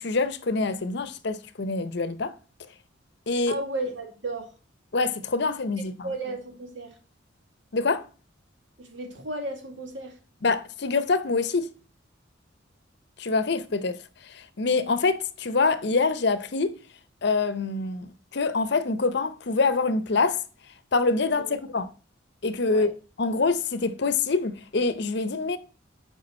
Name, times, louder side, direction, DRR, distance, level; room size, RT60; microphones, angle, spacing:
voice 1, 0.0-2.3 3.3-3.6 4.9-6.1 7.7-8.0 10.4-11.7 13.2-14.0 14.2-16.7 17.2-20.4 20.9-21.4 21.7-21.9 22.4-22.9 23.2-25.6, left 3 dB, 60° left, 0.7 m, -25 dB
voice 2, 3.5-4.5 6.0-6.9 8.8-10.2 21.4-21.6 22.7-22.9, right 2 dB, 70° right, 2.0 m, -34 dB
7.8 x 5.0 x 4.3 m
head